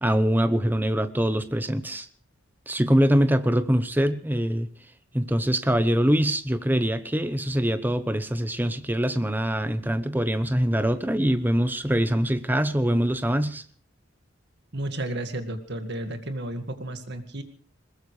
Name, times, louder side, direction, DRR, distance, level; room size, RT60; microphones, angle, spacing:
voice 1, 0.0-2.1 2.7-4.7 5.1-13.6, equal, 10° right, 11 dB, 0.9 m, -23 dB
voice 2, 14.7-17.4, right 1 dB, 55° right, 8 dB, 1.9 m, -32 dB
21.0 x 21.0 x 3.3 m, 0.41 s
head